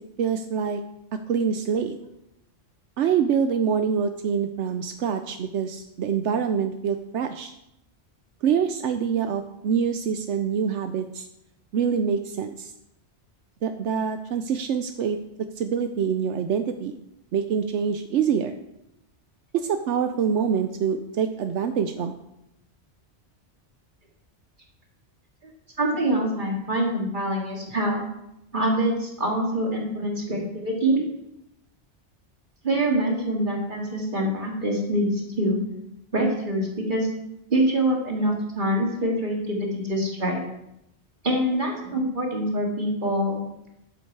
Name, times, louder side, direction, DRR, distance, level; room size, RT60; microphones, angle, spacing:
voice 1, 0.2-0.8 1.3-2.0 3.0-7.5 8.4-11.3 11.7-12.7 13.6-15.2 15.6-16.9 17.3-18.5 19.5-22.1, right 7 dB, 85° right, 8 dB, 1.0 m, -25 dB
voice 2, 25.8-28.0 28.5-31.0 32.6-35.6 36.1-37.1 37.5-40.4 41.2-43.4, right 1 dB, 45° right, -1 dB, 2.5 m, -25 dB
12.0 x 7.8 x 4.7 m, 0.84 s
omnidirectional pair, 1.2 m